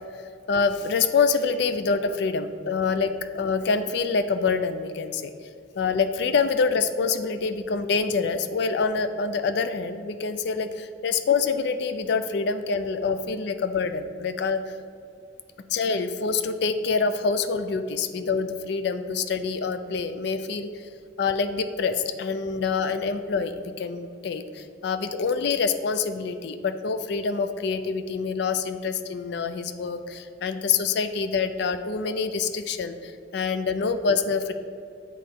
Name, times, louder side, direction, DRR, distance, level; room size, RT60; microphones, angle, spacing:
voice 1, 0.5-5.3 5.8-14.8 15.7-20.9 21.2-34.5, left 5 dB, 60° left, 10 dB, 0.4 m, -26 dB
7.7 x 3.1 x 5.2 m, 2.4 s
head